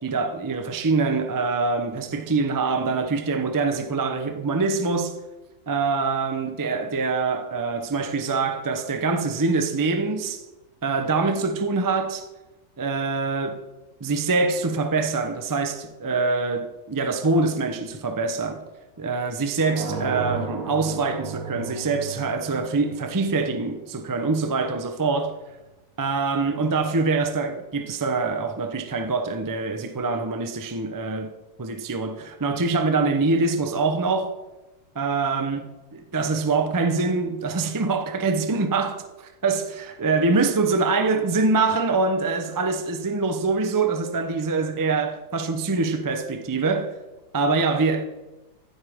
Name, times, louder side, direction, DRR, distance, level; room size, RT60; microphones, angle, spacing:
voice 1, 0.0-5.2 5.7-10.4 10.8-12.3 12.8-13.6 14.0-18.6 19.0-25.4 26.0-31.3 31.6-34.3 34.9-46.9 47.3-48.0, right 4 dB, 30° right, 0.3 m, -24 dB
sound 1, 19.6-24.3, right 4 dB, 60° right, 1.8 m, -34 dB
15.0 x 7.9 x 3.6 m
omnidirectional pair, 1.8 m